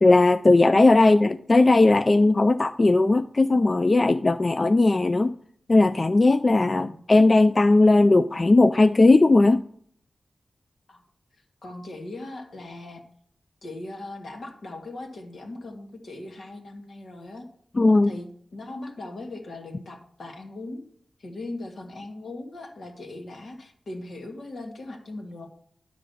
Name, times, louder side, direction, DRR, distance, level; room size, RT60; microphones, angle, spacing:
voice 1, 0.0-5.3 5.7-9.6 17.8-18.1, left 2 dB, 40° left, 11 dB, 0.3 m, -18 dB
voice 2, 11.3-13.0 13.6-17.5 18.0-20.8 21.2-25.5, left 2 dB, 70° left, 2 dB, 1.7 m, -39 dB
10.0 x 3.7 x 6.8 m, 0.62 s
wide cardioid pair, 70°, 0 cm